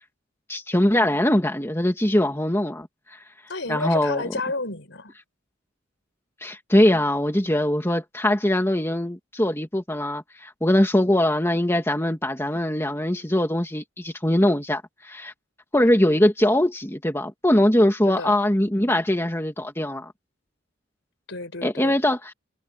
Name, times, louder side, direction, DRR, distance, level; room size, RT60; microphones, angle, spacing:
voice 1, 0.5-3.2 3.7-4.3 6.4-15.3 15.7-20.1 21.6-22.3, left 1 dB, 15° left, 2.1 m, -22 dB
voice 2, 3.5-5.1 18.1-18.4 21.3-22.0, left 3 dB, 70° left, 5.1 m, -31 dB
head